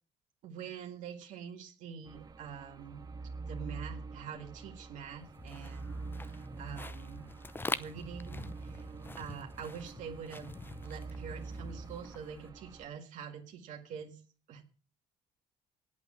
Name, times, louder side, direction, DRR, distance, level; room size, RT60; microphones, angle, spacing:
voice 1, 0.4-3.1 3.5-7.3 7.7-14.2 14.5-14.6, right 7 dB, 70° right, 2 dB, 2.0 m, -45 dB
sound 1, 2.0-12.9, right 4 dB, 30° right, 1.2 m, -46 dB
sound 2, 5.2-12.5, left 3 dB, 15° left, 0.7 m, -44 dB
8.3 x 8.2 x 8.8 m, 0.38 s
supercardioid pair, 80°, 14 cm